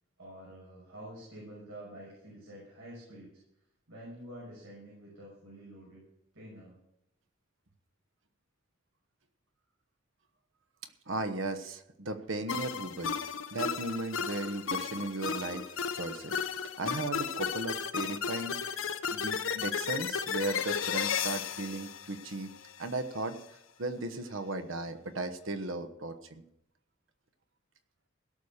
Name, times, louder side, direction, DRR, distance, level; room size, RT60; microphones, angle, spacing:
voice 1, 0.2-3.3 3.9-6.0 6.3-6.8, right 1 dB, 90° right, -5 dB, 6.1 m, -48 dB
voice 2, 11.1-13.2 13.5-15.6 15.9-16.4 16.8-18.8 19.1-22.5 22.8-23.4 23.8-26.4, right 2 dB, 75° right, 10 dB, 1.1 m, -36 dB
sound 1, 12.5-22.9, left 7 dB, 75° left, 0.8 m, -34 dB
17.0 x 6.6 x 7.2 m, 0.83 s
head